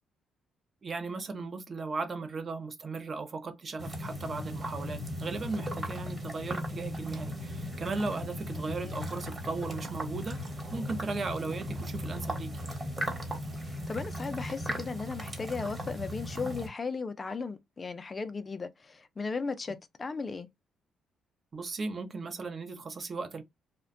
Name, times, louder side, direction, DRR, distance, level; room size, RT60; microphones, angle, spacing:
voice 1, 0.8-10.4 10.7-12.6 21.5-23.4, right 3 dB, 40° right, 0.5 m, -36 dB
sound 1, 3.8-16.7, equal, 25° right, 1.0 m, -37 dB
voice 2, 8.6-9.1 13.6-20.5, left 4 dB, 30° left, 0.3 m, -36 dB
2.5 x 2.1 x 2.4 m
cardioid pair, 90°, 0 cm